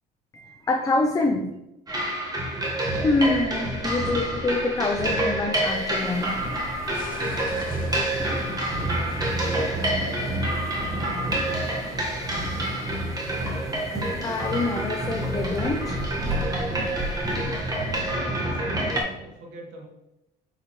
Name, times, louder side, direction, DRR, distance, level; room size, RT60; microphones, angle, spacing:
voice 1, 0.3-1.5 3.0-6.4 14.2-16.0, left 3 dB, 20° left, 3 dB, 0.5 m, -25 dB
sound 1, 1.9-19.0, right 1 dB, 20° right, 1.3 m, -27 dB
sound 2, 3.1-10.0, left 4 dB, 50° left, 0.7 m, -44 dB
sound 3, 5.6-18.2, right 1 dB, ahead, 2.1 m, -40 dB
voice 2, 8.8-10.2 18.1-19.9, right 1 dB, 90° right, 0 dB, 1.5 m, -42 dB
7.6 x 4.8 x 3.0 m, 0.93 s
cardioid pair, 125°, 18 cm